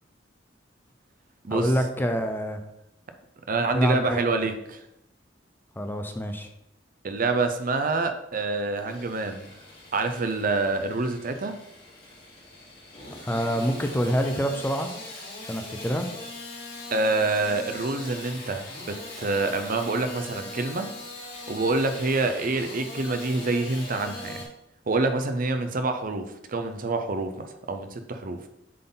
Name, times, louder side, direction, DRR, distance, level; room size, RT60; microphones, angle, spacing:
voice 1, 1.5-2.6 3.7-4.5 5.8-6.5 13.2-14.9 15.4-16.1, equal, 10° left, 6 dB, 0.6 m, -26 dB
voice 2, 3.5-4.8 7.0-9.6 9.9-11.6 16.9-20.9 21.5-24.4 24.9-28.4, right 3 dB, 50° right, 7 dB, 0.6 m, -27 dB
Engine starting / Sawing, 8.6-24.5, left 2 dB, 55° left, 2.5 m, -41 dB
7.6 x 4.0 x 3.9 m, 0.81 s
head